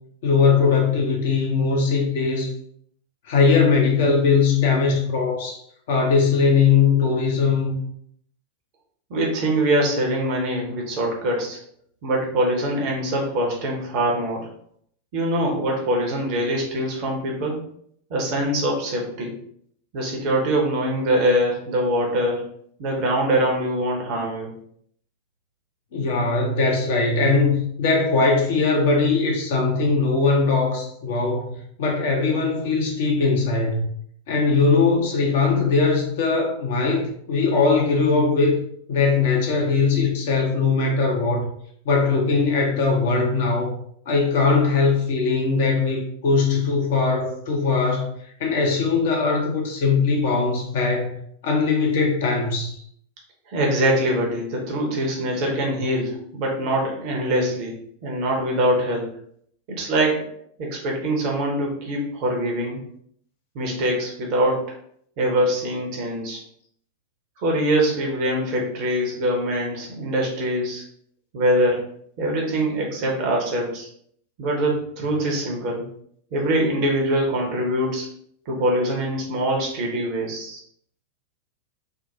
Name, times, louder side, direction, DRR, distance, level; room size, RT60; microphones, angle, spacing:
voice 1, 0.2-2.5 3.3-5.6 5.9-7.8 25.9-33.8 34.3-38.6 38.9-41.5 41.8-43.7 44.1-48.1 48.4-51.2 51.4-52.8, left 4 dB, 55° left, 0 dB, 0.8 m, -20 dB
voice 2, 9.1-11.6 12.0-14.5 15.1-17.6 18.1-19.4 19.9-22.4 22.8-24.5 53.5-57.7 58.0-59.1 59.7-60.2 60.6-62.8 63.5-64.7 65.2-66.4 67.4-70.8 71.3-71.8 72.2-73.9 74.4-75.8 76.3-78.1 78.5-80.6, right 1 dB, 45° right, -1 dB, 0.9 m, -23 dB
3.5 x 2.1 x 2.8 m, 0.66 s
figure-of-eight pair, 90°, 0 cm